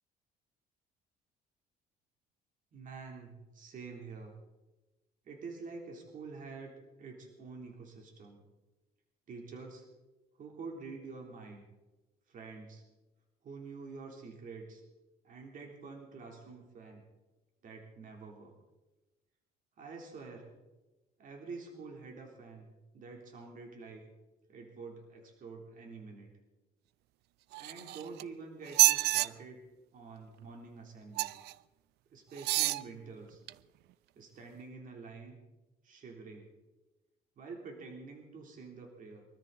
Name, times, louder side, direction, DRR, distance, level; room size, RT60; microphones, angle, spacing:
voice 1, 2.7-4.4 5.3-8.4 9.3-9.9 10.4-11.6 12.3-12.8 13.4-14.8 15.2-17.0 17.6-18.5 19.8-20.5 21.2-22.7 22.9-24.0 24.5-26.3 27.5-29.6 29.9-31.3 32.1-33.4 34.2-35.4 35.8-36.5 37.4-39.3, right 4 dB, 50° right, 1 dB, 3.6 m, -47 dB
sound 1, 27.5-28.2 28.7-29.3 31.2-31.5 32.4-32.8 33.5-33.6, right 17 dB, 80° right, 0.5 m, -27 dB
23.0 x 13.5 x 4.1 m, 1.1 s
cardioid pair, 110°, 17 cm